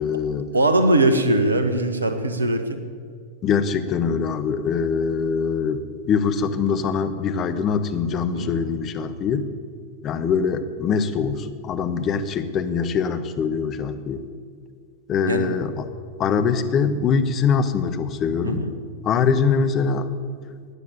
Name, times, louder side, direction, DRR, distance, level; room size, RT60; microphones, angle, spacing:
voice 1, 0.0-0.5 3.4-9.5 10.0-14.2 15.1-15.8 16.2-18.6 19.0-20.1, left 6 dB, 30° left, 9 dB, 1.1 m, -23 dB
voice 2, 0.5-2.8 8.3-8.6 15.2-15.5 18.4-18.7, right 1 dB, 75° right, 9 dB, 1.4 m, -20 dB
15.0 x 9.9 x 8.9 m, 2.1 s
figure-of-eight pair, 90°, 0 cm